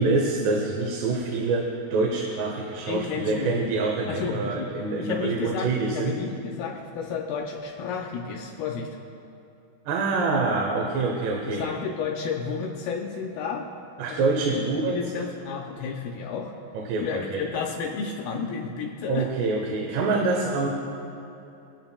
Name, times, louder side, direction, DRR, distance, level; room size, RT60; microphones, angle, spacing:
voice 1, 0.0-6.2 9.9-11.7 14.0-15.3 16.7-17.4 19.1-20.7, right 3 dB, 80° right, 0 dB, 3.1 m, -26 dB
voice 2, 2.9-3.5 4.1-4.7 5.0-9.0 11.5-13.7 14.1-14.6 14.9-16.5 17.0-19.3, left 6 dB, 80° left, 1 dB, 2.3 m, -32 dB
22.5 x 8.9 x 2.2 m, 2.8 s
omnidirectional pair, 4.8 m